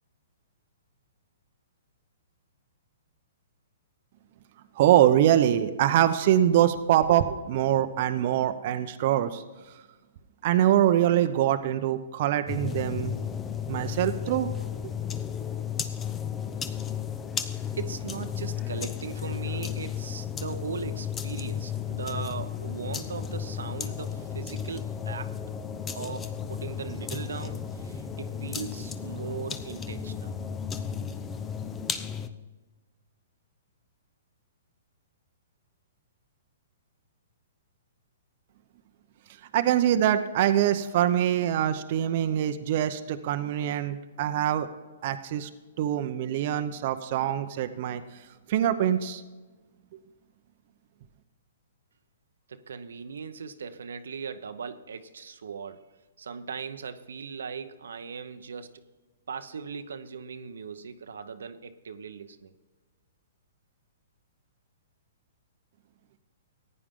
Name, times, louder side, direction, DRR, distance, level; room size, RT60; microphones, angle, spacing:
voice 1, 4.8-9.4 10.4-13.1 13.7-14.5 39.5-44.7 45.0-45.5 45.8-48.0 48.5-49.2, right 11 dB, 50° right, 9 dB, 0.8 m, -24 dB
sound 1, 12.5-32.3, left 8 dB, 15° left, 0.7 m, -34 dB
voice 2, 17.7-25.3 25.9-30.3 52.5-55.8 56.2-58.8 59.3-62.5, right 5 dB, 80° right, 9 dB, 0.8 m, -38 dB
15.0 x 9.8 x 3.7 m, 1.2 s
hypercardioid pair, 140°, 0 cm